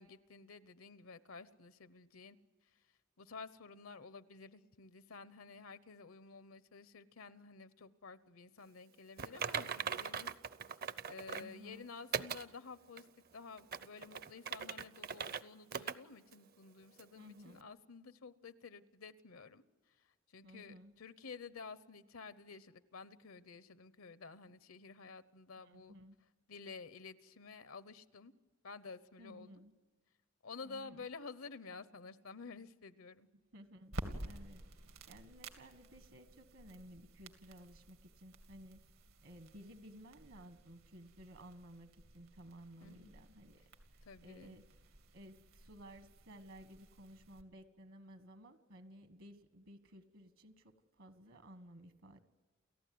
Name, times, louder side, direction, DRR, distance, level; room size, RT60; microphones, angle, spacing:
voice 1, 0.0-2.4 3.2-10.3 11.1-13.1 13.3-19.6 20.3-25.9 26.5-28.3 28.6-29.6 30.4-33.3 42.8-43.1 44.0-44.6, left 4 dB, 80° left, 14 dB, 0.9 m, -52 dB
Typing, 9.2-11.5 12.1-12.5 13.0-13.1 13.6-15.4 15.7-16.0 16.3-16.4 17.0-17.1, right 7 dB, 45° right, 0.6 m, -40 dB
voice 2, 11.3-11.9 17.1-17.8 20.4-20.9 25.6-26.2 29.2-29.7 30.6-31.1 33.5-34.7 35.1-38.8 39.2-43.6 43.9-52.2, equal, 70° right, 9 dB, 1.6 m, -56 dB
sound 1, 33.9-47.4, right 1 dB, 90° right, 2.4 m, -52 dB
29.5 x 14.5 x 9.4 m, 1.4 s
head